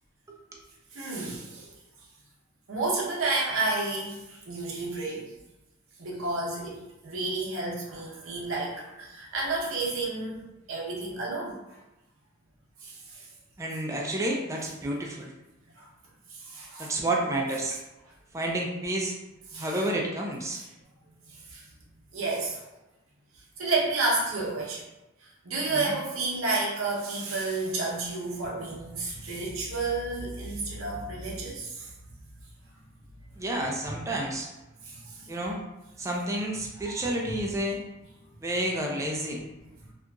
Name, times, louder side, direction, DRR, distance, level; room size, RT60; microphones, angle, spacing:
voice 1, 0.3-0.6 13.6-15.3 16.8-17.8 18.3-19.2 19.6-20.6 25.7-25.9 33.4-34.5 35.3-35.6 36.0-37.8 38.4-39.4, right 1 dB, 15° right, 0 dB, 0.3 m, -30 dB
voice 2, 0.9-1.7 2.7-5.3 6.0-11.8 12.8-13.3 15.8-15.9 16.3-16.9 19.5-19.8 21.3-21.6 22.1-22.6 23.6-24.9 25.2-31.9 34.8-35.3, right 3 dB, 80° right, -3 dB, 0.7 m, -31 dB
2.8 x 2.5 x 2.3 m, 0.99 s
head